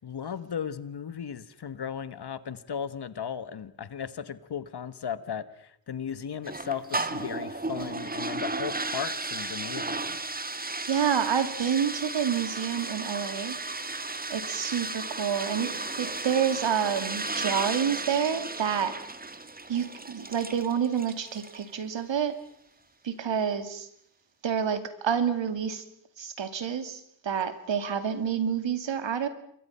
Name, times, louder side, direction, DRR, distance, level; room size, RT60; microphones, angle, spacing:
voice 1, 0.0-10.2, left 7 dB, 55° left, 14 dB, 1.5 m, -36 dB
sound 1, 6.4-21.7, right 3 dB, 20° right, 1.6 m, -34 dB
voice 2, 10.9-13.6 14.3-18.9 19.7-22.4 23.0-23.9 24.4-25.8 26.2-29.3, right 8 dB, 65° right, 10 dB, 2.6 m, -28 dB
28.0 x 22.5 x 5.7 m, 0.70 s
cardioid pair, 75°, 47 cm